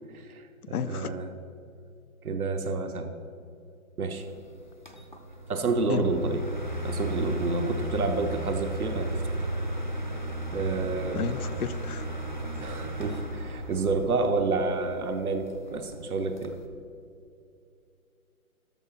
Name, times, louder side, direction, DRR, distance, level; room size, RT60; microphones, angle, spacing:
voice 1, 0.1-1.4 2.2-3.1 4.0-4.2 5.5-6.4 6.8-9.2 10.5-11.4 12.6-16.6, right 3 dB, 80° right, 6 dB, 1.2 m, -29 dB
voice 2, 0.7-1.2 5.9-6.0 11.1-12.0, left 9 dB, 85° left, 14 dB, 0.6 m, -32 dB
sound 1, 4.2-16.7, right 1 dB, 35° left, 0.4 m, -34 dB
13.0 x 4.8 x 5.9 m, 2.5 s
hypercardioid pair, 175°, 43 cm